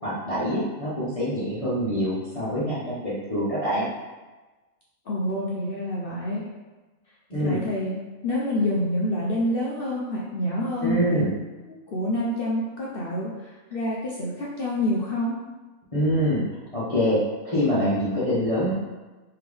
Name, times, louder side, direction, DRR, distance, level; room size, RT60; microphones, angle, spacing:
voice 1, 0.0-3.9 7.3-7.6 10.8-11.3 15.9-18.7, equal, 30° left, -10 dB, 0.8 m, -25 dB
voice 2, 5.1-6.4 7.4-8.0 8.2-11.2 11.9-15.3, left 1 dB, 60° left, -5 dB, 0.6 m, -27 dB
3.5 x 3.4 x 3.4 m, 1.2 s
omnidirectional pair, 1.6 m